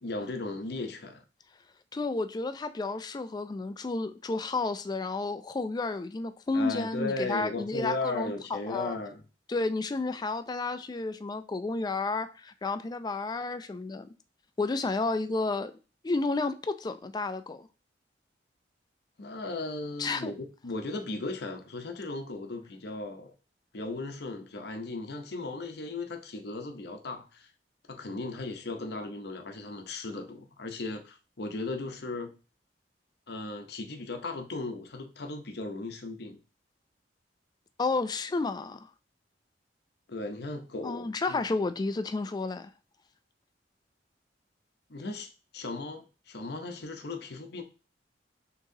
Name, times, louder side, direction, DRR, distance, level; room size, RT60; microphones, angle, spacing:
voice 1, 0.0-1.2 6.5-9.2 19.2-23.3 23.7-27.5 27.9-32.3 33.3-36.4 40.1-41.4 44.9-47.6, left 2 dB, 65° left, 0.7 m, -36 dB
voice 2, 1.9-9.0 9.5-14.1 14.6-15.7 16.0-17.7 20.0-20.3 37.8-38.9 40.8-42.7, left 3 dB, 25° left, 0.3 m, -31 dB
6.3 x 3.0 x 2.7 m
head